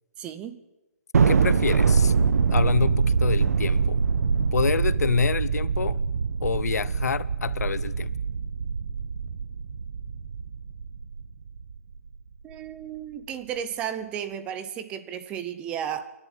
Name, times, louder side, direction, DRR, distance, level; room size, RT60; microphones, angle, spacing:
voice 1, 0.2-0.6 12.4-16.0, right 9 dB, 10° right, 0.8 m, -33 dB
Thunder, 1.1-11.8, right 5 dB, 70° right, 1.2 m, -24 dB
voice 2, 1.2-2.1 2.5-4.0 4.5-6.0 6.4-8.1, left 6 dB, 75° left, 1.0 m, -27 dB
28.5 x 11.5 x 9.1 m
hypercardioid pair, 170°, 9 cm